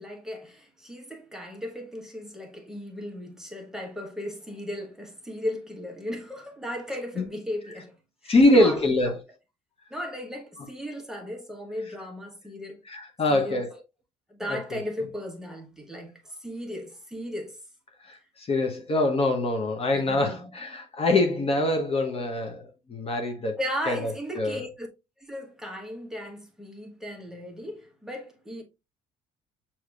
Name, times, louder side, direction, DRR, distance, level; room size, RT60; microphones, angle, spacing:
voice 1, 0.0-8.0 8.2-8.8 9.0-9.1 9.9-12.8 13.3-13.6 14.3-17.6 19.9-20.5 23.6-24.9 25.2-28.6, equal, 5° right, 1.1 m, -36 dB
voice 2, 8.2-9.1 10.6-10.7 12.8-13.7 14.5-14.8 18.0-23.6 23.9-24.6, left 2 dB, 35° left, 0.9 m, -24 dB
6.6 x 2.9 x 2.4 m
cardioid pair, 110°, 17 cm